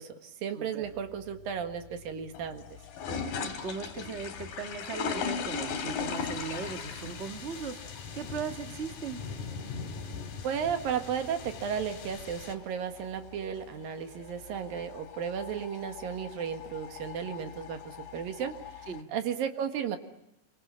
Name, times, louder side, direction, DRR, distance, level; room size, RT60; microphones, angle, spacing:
voice 1, 0.0-2.6 10.4-18.6 19.1-20.0, right 8 dB, 75° right, 7 dB, 3.4 m, -34 dB
voice 2, 0.5-0.8 3.4-9.2 18.9-19.1, right 5 dB, 55° right, 6 dB, 0.7 m, -38 dB
sound 1, 0.8-19.0, left 6 dB, 90° left, 4.2 m, -40 dB
sound 2, 5.5-12.6, left 5 dB, 65° left, 3.7 m, -43 dB
26.5 x 24.0 x 8.9 m, 0.80 s
omnidirectional pair, 4.1 m